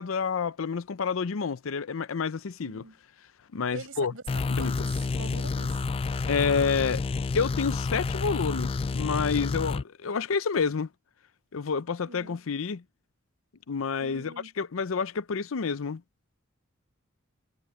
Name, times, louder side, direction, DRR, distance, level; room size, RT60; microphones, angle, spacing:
voice 1, 0.0-2.8 3.5-4.1 4.5-4.7 6.3-7.0 7.3-10.9 11.5-12.8 13.7-16.0, left 5 dB, 75° left, 0.6 m, -29 dB
voice 2, 2.6-3.0 3.7-4.2 4.6-5.8 12.1-12.4 14.0-14.5, right 3 dB, 75° right, 5.3 m, -43 dB
sound 1, 4.3-9.8, left 4 dB, 30° left, 0.3 m, -29 dB
head